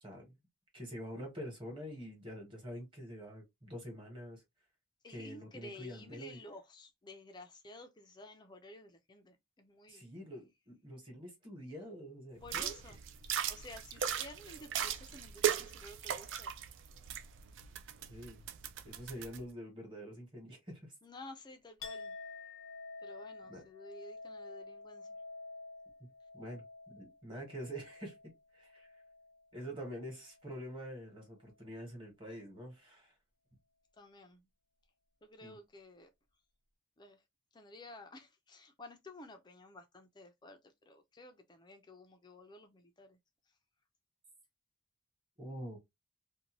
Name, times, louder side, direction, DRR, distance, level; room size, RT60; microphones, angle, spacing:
voice 1, 0.0-0.4 0.7-4.4 5.1-6.4 9.9-12.9 18.1-18.4 18.8-20.9 23.5-23.6 26.3-28.1 28.5-28.9 29.5-33.1 35.4-35.6 45.4-45.8, equal, 25° right, 1.2 m, -46 dB
voice 2, 5.0-10.1 11.2-11.3 12.4-13.0 13.2-16.5 21.0-22.2 23.0-25.2 34.0-34.5 35.2-36.1 37.0-37.2 37.5-43.2, left 2 dB, 20° left, 0.4 m, -53 dB
sound 1, 12.4-19.4, right 9 dB, 60° right, 0.3 m, -38 dB
Chink clink, 21.8-29.5 29.8-30.5, left 3 dB, 90° left, 0.7 m, -50 dB
2.6 x 2.2 x 2.9 m
head